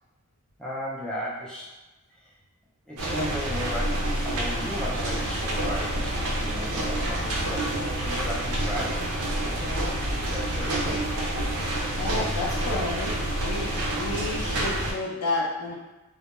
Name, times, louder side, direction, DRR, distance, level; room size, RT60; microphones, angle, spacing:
voice 1, 0.6-1.7 2.9-9.0 9.4-11.0, equal, 5° left, -7 dB, 0.5 m, -35 dB
sound 1, 3.0-14.9, right 1 dB, 80° right, 0.5 m, -28 dB
voice 2, 12.0-13.1 13.4-15.7, left 2 dB, 85° left, -4 dB, 0.7 m, -30 dB
2.2 x 2.1 x 2.9 m, 1.1 s
head